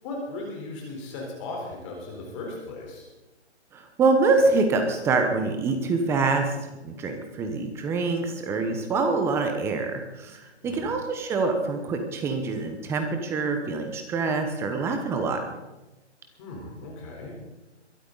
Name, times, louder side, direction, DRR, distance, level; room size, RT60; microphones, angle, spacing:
voice 1, 0.0-3.1 10.6-10.9 16.4-17.3, left 2 dB, 25° left, 0 dB, 3.9 m, -37 dB
voice 2, 3.7-15.4, right 3 dB, 5° right, 5 dB, 1.0 m, -25 dB
22.0 x 12.5 x 4.0 m, 1.0 s
hypercardioid pair, 155°, 36 cm